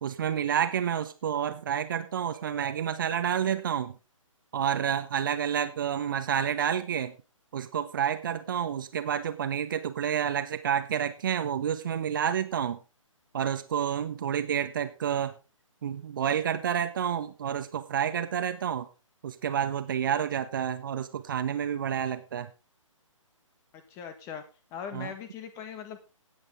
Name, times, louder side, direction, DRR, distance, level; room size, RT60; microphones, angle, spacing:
voice 1, 0.0-4.0 4.5-7.1 7.5-12.8 13.3-15.3 15.8-18.9 19.2-22.5 24.9-25.1, right 8 dB, 40° right, 10 dB, 1.4 m, -29 dB
voice 2, 23.7-24.4 24.7-26.0, left 8 dB, 15° left, 10 dB, 1.6 m, -40 dB
17.0 x 8.5 x 3.7 m, 0.31 s
figure-of-eight pair, 135°, 17 cm